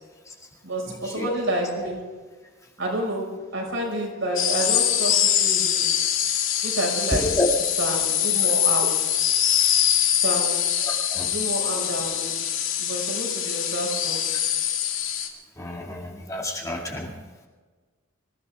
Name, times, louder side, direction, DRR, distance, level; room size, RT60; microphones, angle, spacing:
voice 1, 0.6-2.1 2.8-5.9 6.6-7.3 7.8-9.0 10.2-10.7 11.2-12.5 12.8-14.2, right 1 dB, 65° right, -1 dB, 5.7 m, -29 dB
sound 1, 4.4-15.3, left 10 dB, 65° left, 2.4 m, -23 dB
voice 2, 7.1-7.5 10.8-11.3 15.6-17.1, left 1 dB, 15° left, -2 dB, 2.2 m, -29 dB
26.0 x 15.5 x 3.6 m, 1.4 s
head